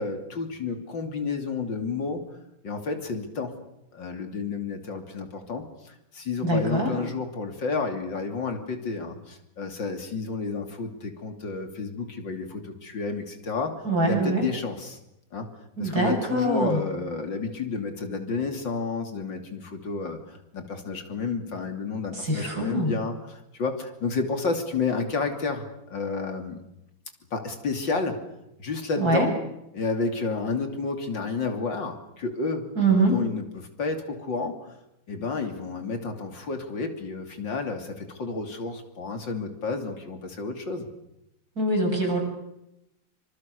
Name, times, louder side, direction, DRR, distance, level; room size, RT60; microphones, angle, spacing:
voice 1, 0.0-2.2 2.6-3.6 3.9-13.7 14.1-15.0 15.3-15.5 15.8-26.6 27.3-28.2 28.6-29.3 29.7-34.7 35.1-40.9, left 4 dB, 75° left, 6 dB, 3.6 m, -31 dB
voice 2, 6.4-7.0 13.9-14.5 15.8-16.8 22.1-22.9 29.0-29.3 32.8-33.1 41.6-42.2, right 2 dB, 50° right, 1 dB, 8.7 m, -23 dB
26.5 x 25.5 x 6.7 m, 0.85 s
omnidirectional pair, 2.0 m